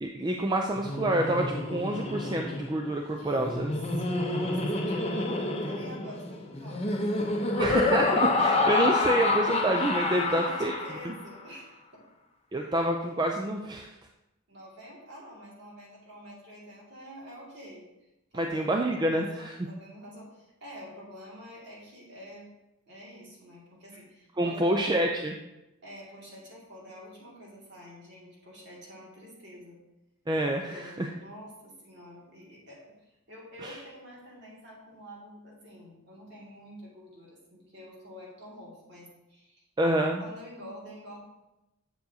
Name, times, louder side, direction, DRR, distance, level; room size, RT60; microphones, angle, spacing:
voice 1, 0.0-3.7 7.6-10.8 11.0-11.1 12.5-13.9 18.3-19.5 24.4-25.4 30.3-31.1 33.6-33.8 39.8-40.2, right 1 dB, 20° right, 2 dB, 0.4 m, -27 dB
Laughter, 0.8-11.2, left 2 dB, 30° left, 0.7 m, -28 dB
voice 2, 3.2-7.1 10.2-12.0 14.5-17.8 18.3-22.5 22.9-24.9 25.8-29.8 30.6-33.0 33.3-41.2, equal, 50° right, -4 dB, 2.2 m, -47 dB
7.6 x 7.0 x 2.8 m, 0.95 s
head